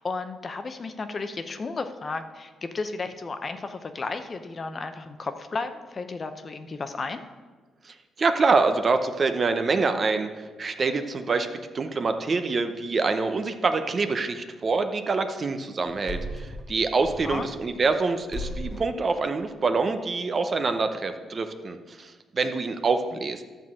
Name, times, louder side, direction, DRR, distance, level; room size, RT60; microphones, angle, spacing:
voice 1, 0.0-7.2 17.2-17.5, left 3 dB, 35° left, 8 dB, 0.7 m, -33 dB
voice 2, 7.8-23.4, right 4 dB, 40° right, 8 dB, 0.7 m, -26 dB
sound 1, 15.8-18.0 18.3-19.0, equal, 5° right, 1.5 m, -36 dB
12.0 x 4.0 x 7.5 m, 1.4 s
cardioid pair, 90°, 0 cm